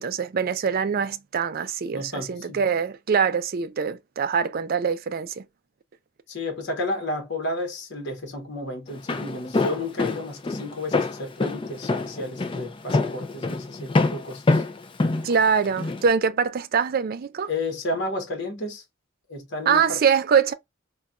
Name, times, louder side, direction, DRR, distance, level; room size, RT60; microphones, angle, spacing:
voice 1, 0.0-5.4 15.2-17.5 19.7-20.5, right 6 dB, 45° right, 0.4 m, -23 dB
voice 2, 1.9-2.6 6.3-14.6 17.5-18.8 19.3-20.0, left 2 dB, 55° left, 1.0 m, -32 dB
Walk footsteps, 8.9-16.0, left 3 dB, 25° left, 0.4 m, -25 dB
4.0 x 2.2 x 2.2 m
head